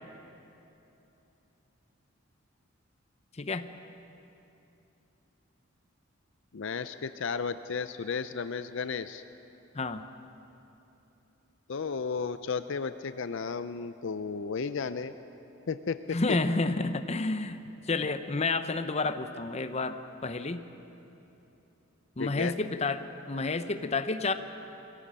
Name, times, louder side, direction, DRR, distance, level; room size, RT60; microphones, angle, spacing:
voice 1, 3.4-3.7 9.7-10.0 16.1-17.6 17.9-20.7 22.2-24.3, left 3 dB, 30° left, 10 dB, 0.8 m, -30 dB
voice 2, 6.5-9.2 11.7-15.1 15.7-16.2 22.2-22.5, left 5 dB, 65° left, 11 dB, 0.5 m, -33 dB
22.5 x 16.5 x 7.5 m, 3.0 s
head